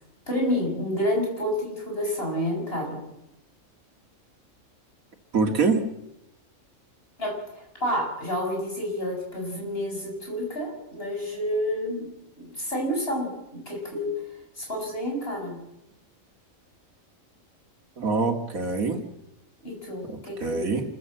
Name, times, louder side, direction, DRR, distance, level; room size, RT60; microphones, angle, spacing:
voice 1, 0.3-3.0 7.2-12.1 12.4-14.1 14.6-15.6 19.6-20.7, equal, 45° left, 0 dB, 7.1 m, -29 dB
voice 2, 5.3-5.8 18.0-19.0 20.1-20.8, right 4 dB, 80° right, 6 dB, 2.5 m, -25 dB
27.0 x 15.0 x 7.8 m, 0.87 s
omnidirectional pair, 1.4 m